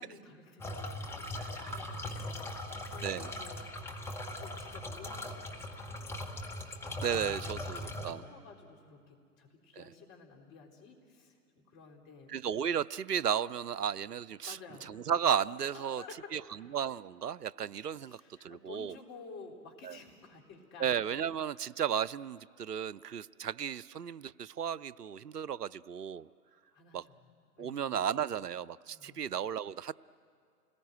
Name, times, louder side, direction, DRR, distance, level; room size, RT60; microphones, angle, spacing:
voice 1, 0.0-3.7 4.4-6.4 6.9-12.4 14.4-14.9 15.7-16.6 18.0-21.0 26.7-27.3 27.6-28.0 28.8-29.3, left 4 dB, 25° left, 1 dB, 4.0 m, -53 dB
sound 1, 0.6-8.1, left 1 dB, 5° left, 1.5 m, -40 dB
voice 2, 1.4-1.8 3.0-3.3 7.0-8.2 9.8-9.9 12.3-14.6 14.9-16.0 16.3-16.4 16.7-18.9 19.8-20.0 20.8-26.3 26.9-27.0 27.6-29.9, right 8 dB, 85° right, 21 dB, 0.6 m, -34 dB
29.0 x 20.0 x 9.4 m, 2.3 s
figure-of-eight pair, 115°, 46 cm